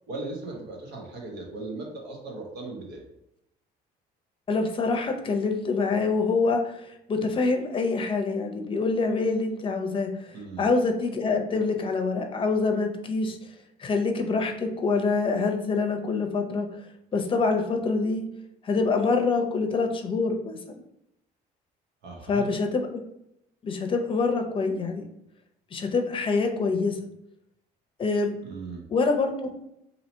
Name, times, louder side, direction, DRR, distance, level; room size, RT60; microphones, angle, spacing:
voice 1, 0.1-3.0 10.3-10.7 22.0-22.5 28.4-28.9, right 3 dB, 80° right, 0 dB, 1.1 m, -38 dB
voice 2, 4.5-10.3 10.6-13.4 13.8-16.7 17.1-18.3 18.6-20.8 22.3-23.0 23.6-25.0 25.7-27.0 28.0-28.4 28.9-29.5, left 4 dB, 30° left, 5 dB, 0.6 m, -25 dB
2.8 x 2.8 x 4.3 m, 0.80 s
cardioid pair, 110°, 17 cm